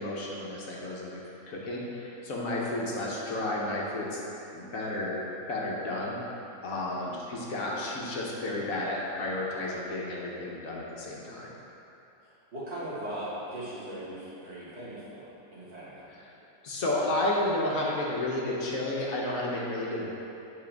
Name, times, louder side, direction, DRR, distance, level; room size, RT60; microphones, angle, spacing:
voice 1, 0.0-4.2 4.5-6.2 6.6-11.5 16.1-16.3 16.6-20.2, left 1 dB, 65° left, -4 dB, 1.3 m, -32 dB
voice 2, 12.5-16.0, right 1 dB, 45° right, -9 dB, 1.9 m, -39 dB
7.3 x 4.3 x 4.5 m, 2.9 s
omnidirectional pair, 1.6 m